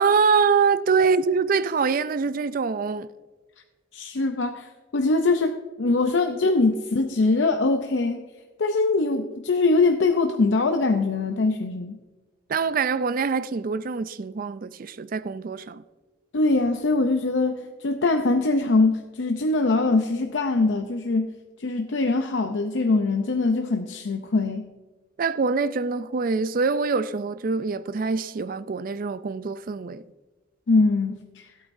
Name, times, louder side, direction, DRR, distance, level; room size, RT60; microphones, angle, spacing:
voice 1, 0.0-3.1 12.5-15.8 25.2-30.0, right 5 dB, 50° right, 0.4 m, -24 dB
voice 2, 3.9-8.2 8.6-12.0 16.3-21.3 21.6-24.7 30.7-31.2, left 3 dB, 80° left, 0.6 m, -22 dB
16.5 x 8.6 x 2.6 m
head